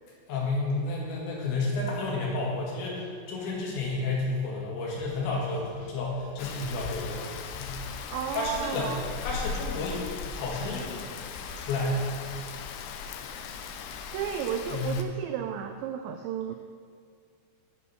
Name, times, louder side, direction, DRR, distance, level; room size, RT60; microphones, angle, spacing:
voice 1, 0.3-7.8 8.3-8.9 9.2-11.0 11.3-12.0 14.7-14.9, left 3 dB, 70° left, -3 dB, 4.1 m, -31 dB
sound 1, 4.9-11.8, equal, 50° left, 4.1 m, -52 dB
Rain, 6.4-15.0, left 6 dB, 90° left, 2.4 m, -38 dB
voice 2, 8.1-9.0 14.1-16.6, right 9 dB, 85° right, 7 dB, 2.5 m, -33 dB
9.0 x 8.4 x 5.7 m, 2.2 s
omnidirectional pair, 5.6 m